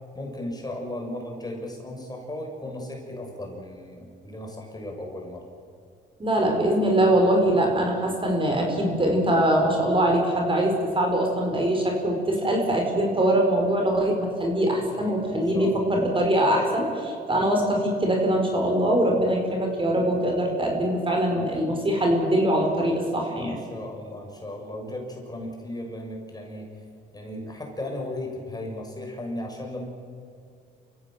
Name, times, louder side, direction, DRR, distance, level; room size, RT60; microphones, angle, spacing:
voice 1, 0.1-5.4 15.0-16.0 21.3-21.5 23.4-26.7 27.1-29.9, left 1 dB, 20° left, 0 dB, 6.4 m, -36 dB
voice 2, 6.2-23.6, right 1 dB, 25° right, 1 dB, 5.3 m, -23 dB
28.0 x 16.0 x 7.7 m, 2.3 s
cardioid pair, 90°, 20 cm